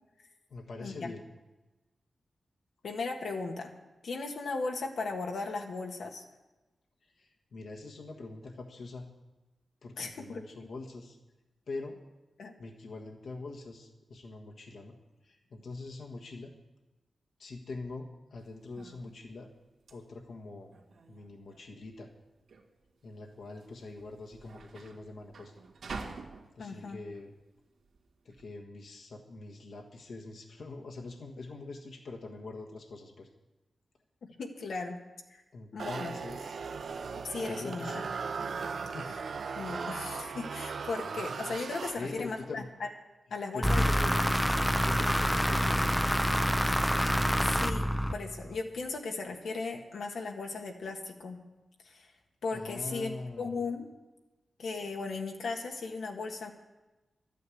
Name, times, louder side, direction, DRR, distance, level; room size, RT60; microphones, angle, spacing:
voice 1, 0.5-1.2 7.2-9.0 9.8-11.2 11.7-12.0 12.6-15.0 15.2-16.5 17.4-19.5 19.9-20.7 21.1-22.1 23.0-25.5 26.5-27.4 28.2-33.3 35.5-36.6 37.5-38.1 38.8-39.2 41.9-42.7 43.5-44.5 44.8-46.2 52.5-53.7, left 3 dB, 65° left, 1 dB, 1.4 m, -43 dB
voice 2, 2.8-3.7 4.0-6.2 10.0-10.4 12.4-12.5 26.6-27.0 34.4-35.0 35.3-35.4 35.7-36.2 37.2-38.0 39.1-39.2 39.5-42.9 43.3-43.9 46.6-46.9 47.4-51.4 51.8-52.1 52.4-53.9 54.6-56.5, left 3 dB, 80° left, 2 dB, 1.6 m, -37 dB
sound 1, 18.4-28.4, right 4 dB, 85° right, 1.9 m, -48 dB
sound 2, 35.8-42.4, right 5 dB, 60° right, 0.7 m, -38 dB
sound 3, 43.6-48.6, equal, ahead, 0.4 m, -27 dB
12.5 x 9.3 x 8.4 m, 1.1 s
wide cardioid pair, 150°, 0 cm